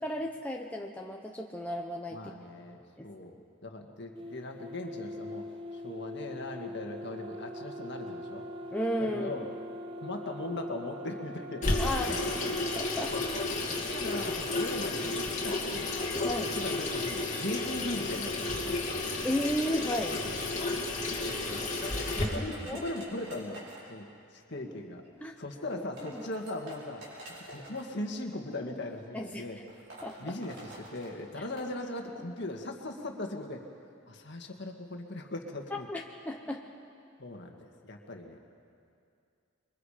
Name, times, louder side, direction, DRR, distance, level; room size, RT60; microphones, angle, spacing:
voice 1, 0.0-2.2 3.0-3.1 8.7-9.3 11.8-12.2 12.8-13.1 16.2-16.6 19.2-20.2 22.2-22.3 22.6-22.8 25.2-25.3 26.1-26.2 29.1-29.4 30.0-30.2 35.7-36.6, equal, 5° left, 0 dB, 0.8 m, -33 dB
voice 2, 2.1-2.8 3.0-5.4 5.7-8.4 9.0-9.5 10.0-11.7 12.0-12.8 13.1-13.3 13.7-15.9 16.5-18.8 20.7-20.8 21.1-21.7 22.1-29.6 30.2-33.6 34.1-35.9 37.2-38.4, left 2 dB, 50° left, 3 dB, 1.9 m, -39 dB
sound 1, 4.2-13.2, left 1 dB, 25° right, 1.0 m, -42 dB
Water tap faucet / Sink (filling or washing), 11.6-22.2, left 2 dB, 35° left, 2.4 m, -32 dB
sound 2, 21.2-24.0 25.1-25.2 25.7-27.8 28.8-29.0 29.3-29.4 29.7-31.7, right 1 dB, 50° right, 5.3 m, -47 dB
27.0 x 23.0 x 5.1 m, 2.4 s
head